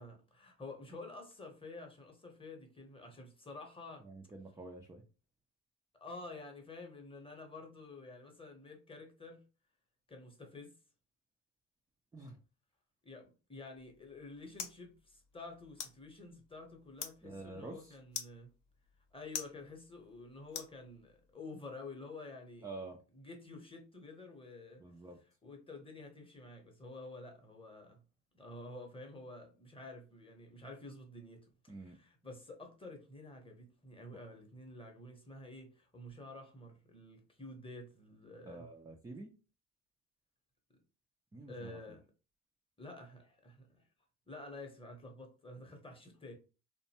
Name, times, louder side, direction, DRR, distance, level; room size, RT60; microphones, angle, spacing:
voice 1, 0.0-4.1 6.0-9.4 10.1-10.7 13.0-18.5 19.1-22.7 23.1-24.8 25.4-28.0 28.3-38.7 41.5-42.1 42.8-43.8 44.3-46.4, left 2 dB, 15° left, 0.8 m, -50 dB
voice 2, 4.0-5.0 12.1-12.4 17.2-18.0 22.6-23.0 24.8-25.2 31.7-32.0 38.4-39.3 41.3-41.8, right 2 dB, 10° right, 0.4 m, -48 dB
sound 1, 13.8-21.3, left 7 dB, 50° left, 0.8 m, -49 dB
2.6 x 2.2 x 2.8 m
hypercardioid pair, 70°, 39 cm